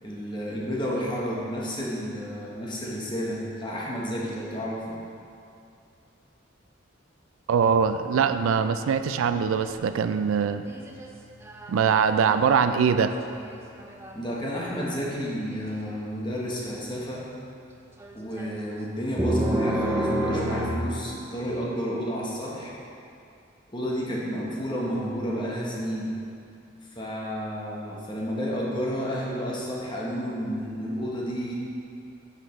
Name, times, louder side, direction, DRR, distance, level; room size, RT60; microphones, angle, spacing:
voice 1, 0.0-5.0 14.1-17.2 18.1-22.7 23.7-26.1 26.9-31.5, equal, 20° left, -4 dB, 1.1 m, -31 dB
voice 2, 7.5-10.6 11.7-13.1, right 6 dB, 85° right, 10 dB, 0.3 m, -22 dB
sound 1, 7.7-10.0 10.4-11.1 11.4-11.8 12.1-14.1 15.5-15.7 18.0-18.5 19.2-20.7, right 1 dB, 15° right, 0.4 m, -29 dB
8.6 x 6.7 x 3.2 m, 2.5 s
head